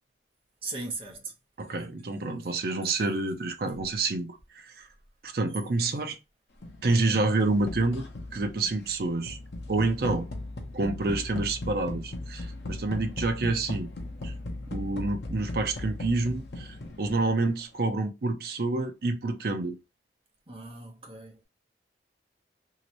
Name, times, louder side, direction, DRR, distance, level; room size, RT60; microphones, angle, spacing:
voice 1, 0.6-1.3 9.9-10.2 12.4-12.5 20.5-21.4, right 3 dB, 30° right, 0.9 m, -39 dB
voice 2, 1.6-4.9 5.2-6.2 6.8-8.1 8.3-9.4 9.7-10.3 10.7-13.9 14.2-14.3 14.7-19.8, right 3 dB, 55° right, 0.5 m, -28 dB
sound 1, 6.6-17.5, left 2 dB, 70° left, 0.8 m, -38 dB
3.1 x 2.8 x 2.9 m
head